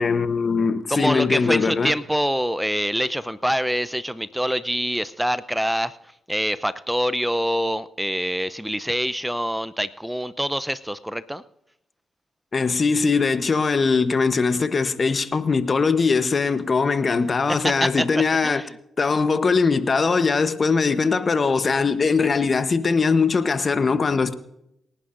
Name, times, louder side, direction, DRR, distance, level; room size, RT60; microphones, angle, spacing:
voice 1, 0.0-1.9 12.5-18.6 19.0-24.3, left 4 dB, 45° left, 1.0 m, -21 dB
voice 2, 0.9-5.9 6.3-11.4 17.6-18.7, equal, 5° right, 0.6 m, -25 dB
28.5 x 11.5 x 2.6 m
hypercardioid pair, 45°, 0 cm